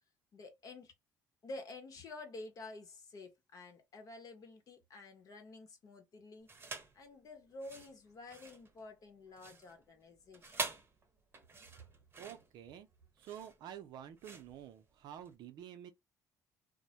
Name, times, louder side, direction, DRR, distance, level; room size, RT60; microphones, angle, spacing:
voice 1, 0.3-0.9 1.4-6.5 6.9-10.6, left 2 dB, 50° left, 0.9 m, -50 dB
sound 1, 6.5-7.0 7.5-15.4, right 3 dB, 30° right, 0.8 m, -46 dB
voice 2, 12.2-12.9 13.2-15.9, right 10 dB, 70° right, 0.6 m, -49 dB
2.1 x 2.1 x 2.7 m
supercardioid pair, 70°, 8 cm